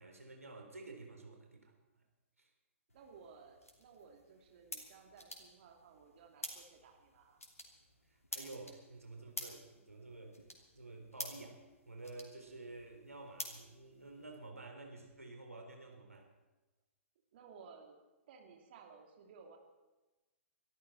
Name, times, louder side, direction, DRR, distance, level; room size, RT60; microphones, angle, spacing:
voice 1, 0.0-2.1 2.4-2.5 8.1-10.4 10.7-16.3, right 2 dB, 80° right, 3 dB, 3.6 m, -51 dB
sound 1, 2.9-14.4, left 1 dB, 80° left, 3.0 m, -51 dB
voice 2, 2.9-7.4 17.3-18.0 18.3-19.6, right 5 dB, 45° right, 2 dB, 3.0 m, -58 dB
24.0 x 13.5 x 4.2 m, 1.1 s
figure-of-eight pair, 115°, 8 cm